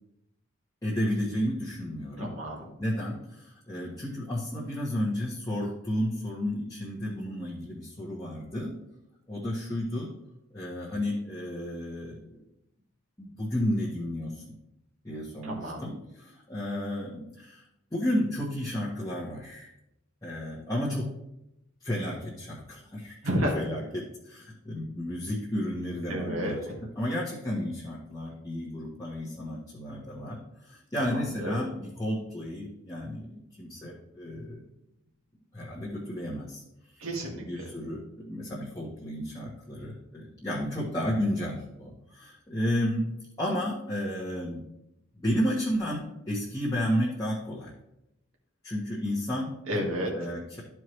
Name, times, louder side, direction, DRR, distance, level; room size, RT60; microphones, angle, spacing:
voice 1, 0.8-2.4 2.8-8.7 9.3-10.1 10.5-12.4 13.2-14.5 15.0-17.6 17.9-19.7 20.2-21.1 21.8-23.1 23.5-26.6 27.0-34.6 35.5-36.6 36.9-37.1 37.4-43.1 43.4-44.6 45.1-47.7 48.6-49.8 50.1-50.6, equal, 15° left, -8 dB, 1.3 m, -32 dB
voice 2, 2.2-2.7 15.4-15.8 23.2-23.5 26.1-26.8 31.1-31.6 37.0-37.4 49.7-50.3, equal, 90° right, -1 dB, 1.8 m, -31 dB
13.0 x 4.6 x 3.2 m, 0.86 s
head